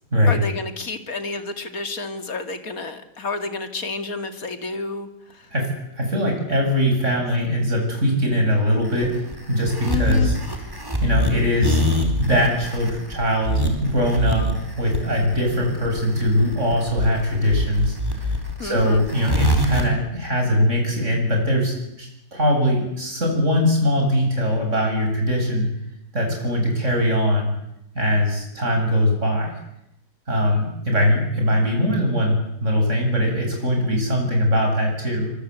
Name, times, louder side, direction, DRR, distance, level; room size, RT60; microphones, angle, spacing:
voice 1, 0.3-5.5 9.9-10.3 18.6-19.0 31.5-32.0, left 4 dB, 55° left, 8 dB, 2.8 m, -30 dB
voice 2, 5.5-10.3 11.0-11.8 12.2-14.5 14.8-25.7 26.1-27.5 28.0-29.6 30.3-35.3, equal, 40° right, 1 dB, 8.6 m, -21 dB
sound 1, 8.8-19.8, equal, 10° right, 4.2 m, -24 dB
25.5 x 24.0 x 8.4 m, 0.81 s
omnidirectional pair, 1.9 m